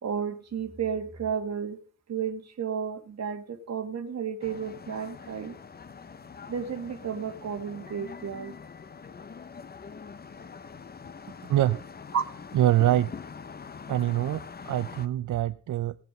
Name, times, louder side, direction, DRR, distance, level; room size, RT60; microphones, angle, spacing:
voice 1, 0.0-1.8 2.1-5.5 6.5-8.6 12.1-12.2, right 7 dB, 60° right, 6 dB, 1.7 m, -32 dB
sound 1, 4.4-15.1, left 5 dB, 30° left, 0.6 m, -44 dB
voice 2, 11.5-11.8 12.5-13.1 13.9-16.0, right 13 dB, 85° right, 12 dB, 0.5 m, -24 dB
17.0 x 8.2 x 5.3 m, 0.40 s
wide cardioid pair, 155°, 30 cm